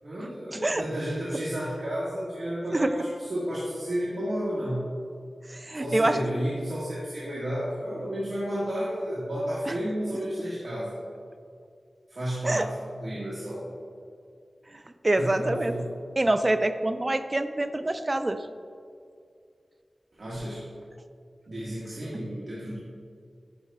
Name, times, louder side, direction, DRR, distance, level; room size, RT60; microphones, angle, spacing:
voice 1, 0.0-5.0 5.7-11.0 12.1-13.6 15.1-16.0 20.2-20.6 21.5-22.8, equal, 65° right, -9 dB, 1.5 m, -32 dB
voice 2, 5.5-6.2 12.4-12.7 15.0-15.7 16.2-18.4, right 1 dB, 30° right, 9 dB, 0.3 m, -25 dB
10.5 x 5.2 x 2.2 m, 2.3 s
wide cardioid pair, 90°, 0 cm